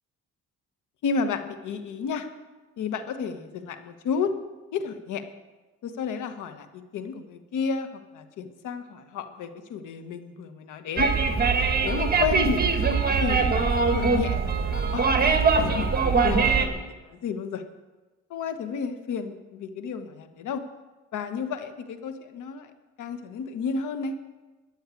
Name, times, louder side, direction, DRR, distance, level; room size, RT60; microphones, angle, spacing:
voice 1, 1.0-2.3 2.8-4.3 4.7-5.2 5.8-11.1 11.8-15.1 15.5-17.6 18.3-20.6 21.1-22.7 23.0-24.2, left 5 dB, 80° left, 9 dB, 1.2 m, -32 dB
sound 1, 11.0-16.7, right 4 dB, 30° right, 1.6 m, -22 dB
13.0 x 6.6 x 9.6 m, 1.2 s
cardioid pair, 90°, 30 cm